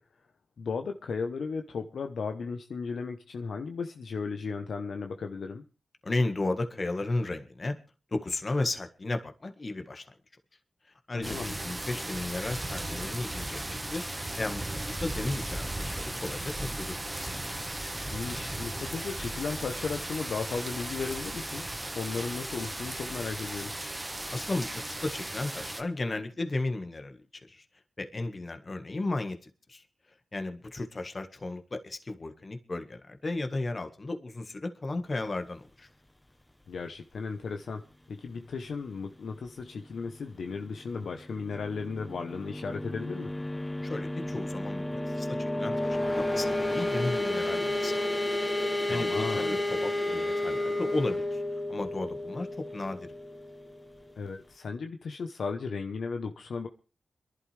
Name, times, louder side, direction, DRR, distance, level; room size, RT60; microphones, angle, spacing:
voice 1, 0.6-5.6 11.1-11.5 18.1-21.6 21.9-23.7 36.7-37.8 38.1-43.3 48.9-49.6 54.2-56.7, left 5 dB, 80° left, 5 dB, 1.0 m, -35 dB
voice 2, 6.0-7.8 8.1-10.1 10.8-17.3 24.3-27.2 27.5-27.6 28.0-29.8 30.3-35.9 43.8-48.4 48.6-51.4 51.7-53.1, left 2 dB, 40° left, 7 dB, 1.7 m, -34 dB
sound 1, 11.2-25.8, right 1 dB, 20° right, 1.5 m, -36 dB
sound 2, 41.6-54.1, left 1 dB, 15° left, 1.0 m, -31 dB
26.5 x 11.5 x 3.4 m, 0.34 s
cardioid pair, 60°, 0 cm